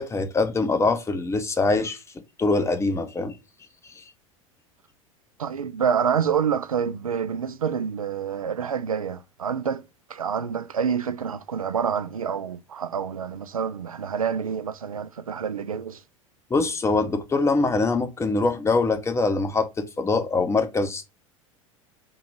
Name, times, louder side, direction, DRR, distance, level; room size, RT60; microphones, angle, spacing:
voice 1, 0.0-2.0 2.4-3.3 3.9-4.0 16.5-21.1, left 3 dB, 15° left, 0.7 m, -23 dB
voice 2, 5.4-9.8 10.1-16.0, right 7 dB, 85° right, 0.4 m, -27 dB
3.7 x 2.8 x 4.7 m
figure-of-eight pair, 85°, 17 cm